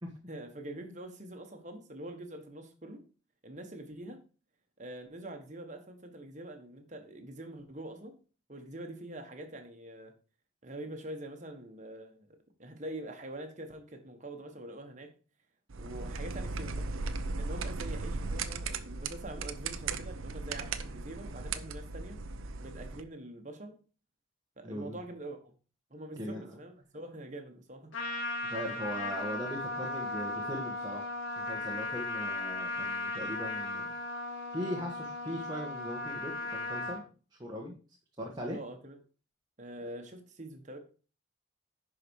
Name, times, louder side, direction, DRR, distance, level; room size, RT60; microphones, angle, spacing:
voice 1, 0.3-3.0 3.4-4.2 4.8-8.1 8.5-10.1 10.6-15.1 15.8-16.9 17.4-22.2 22.6-23.8 24.6-25.5 25.9-27.9 28.3-28.4 38.5-39.0 39.6-40.8, right 1 dB, 35° right, 5 dB, 1.5 m, -45 dB
sound 1, 15.7-23.0, right 3 dB, 80° right, 0.7 m, -37 dB
voice 2, 24.6-25.0 26.2-26.6 28.4-31.1 31.3-33.9 34.5-37.0 37.4-37.7 38.2-38.6, equal, 20° right, -1 dB, 1.4 m, -39 dB
Trumpet, 27.9-37.0, left 2 dB, 65° left, 2.7 m, -36 dB
11.0 x 5.1 x 4.7 m, 0.36 s
head